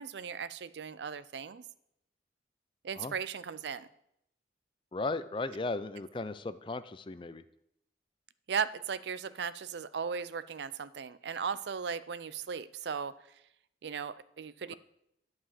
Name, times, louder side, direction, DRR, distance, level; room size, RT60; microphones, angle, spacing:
voice 1, 0.0-1.6 2.8-3.9 8.5-13.1 13.8-14.7, right 6 dB, 75° right, 15 dB, 0.5 m, -37 dB
voice 2, 4.9-7.4 14.7-14.8, left 3 dB, 25° left, 13 dB, 0.4 m, -36 dB
11.0 x 4.8 x 7.4 m, 0.77 s
head